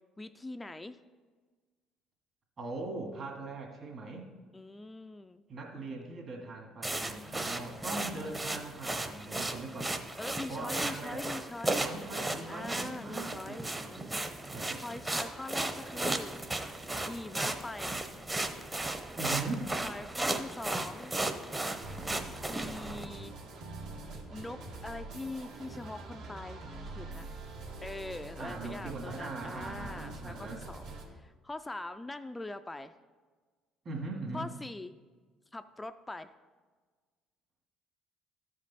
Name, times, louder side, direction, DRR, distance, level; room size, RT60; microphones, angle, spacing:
voice 1, 0.2-1.0 4.5-5.5 8.0-8.6 10.2-11.9 12.5-16.6 17.0-18.0 19.8-21.1 22.2-23.3 24.3-26.6 27.0-27.3 27.8-32.9 34.3-34.9 35.5-36.3, left 2 dB, 15° left, 10 dB, 0.3 m, -43 dB
voice 2, 2.6-4.3 5.5-10.2 10.5-11.2 11.8-14.1 14.5-14.8 19.2-19.7 28.4-30.6 33.8-34.5, right 3 dB, 50° right, 1 dB, 2.0 m, -40 dB
sound 1, 6.8-23.1, right 2 dB, 20° right, 0.8 m, -35 dB
sound 2, 21.8-31.1, right 2 dB, 75° right, 1.5 m, -44 dB
13.0 x 5.2 x 4.1 m, 1.4 s
supercardioid pair, 85°, 0 cm